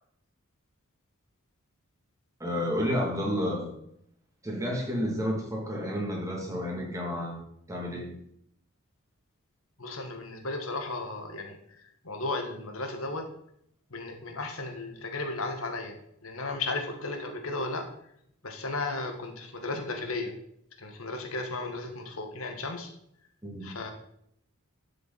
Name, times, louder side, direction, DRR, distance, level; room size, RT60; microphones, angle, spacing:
voice 1, 2.4-3.7 4.4-7.4 7.7-8.2 23.4-23.7, equal, 15° right, -2 dB, 2.7 m, -30 dB
voice 2, 9.8-13.3 13.9-16.0 16.2-17.9 18.4-20.3 20.8-22.9 23.6-23.9, left 2 dB, 70° left, 5 dB, 1.6 m, -35 dB
12.0 x 7.0 x 4.2 m, 0.72 s
head